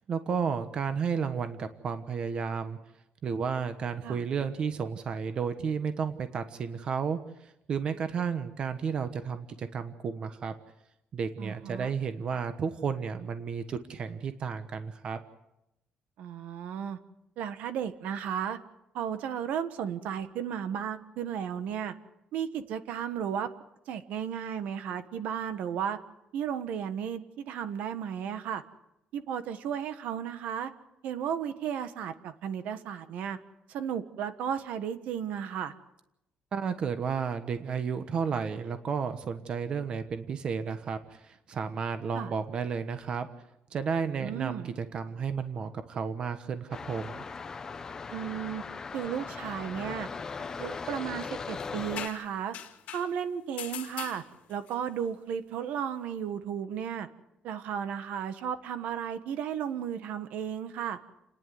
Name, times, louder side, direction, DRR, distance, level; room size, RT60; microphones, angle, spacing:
voice 1, 0.1-2.8 3.2-7.2 7.7-10.6 11.1-15.2 36.5-43.3 43.7-47.2, right 6 dB, 40° right, 10 dB, 1.2 m, -32 dB
voice 2, 11.4-11.9 16.2-17.0 17.4-18.6 18.9-21.9 22.3-23.5 23.9-26.0 26.3-28.6 29.1-30.7 31.0-33.4 33.7-35.7 42.1-42.3 44.2-44.7 48.1-48.6 48.9-50.1 50.5-52.5 52.9-54.2 54.5-57.1 57.4-61.0, right 8 dB, 70° right, 11 dB, 1.4 m, -34 dB
sound 1, 46.7-52.1, left 5 dB, 20° left, 0.9 m, -39 dB
sound 2, 51.6-53.1 53.6-54.7, left 10 dB, 70° left, 2.1 m, -41 dB
29.5 x 10.5 x 9.5 m, 0.88 s
cardioid pair, 175°, 3 cm